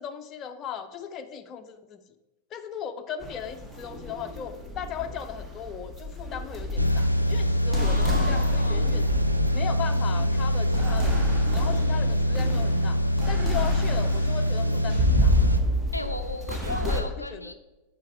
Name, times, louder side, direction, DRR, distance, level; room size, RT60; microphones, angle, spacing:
voice 1, 0.0-2.0 2.5-9.1 9.5-13.0 13.3-15.4 16.8-17.5, left 8 dB, 30° left, 7 dB, 0.5 m, -37 dB
sound 1, 3.2-17.0, left 1 dB, 15° right, 1.0 m, -30 dB
sound 2, 6.8-15.6, equal, 90° right, 0.4 m, -24 dB
voice 2, 7.7-8.9 11.7-12.4 15.9-17.5, left 2 dB, 85° left, 8 dB, 0.4 m, -36 dB
8.1 x 4.0 x 4.5 m, 1.0 s
figure-of-eight pair, 90°, 0 cm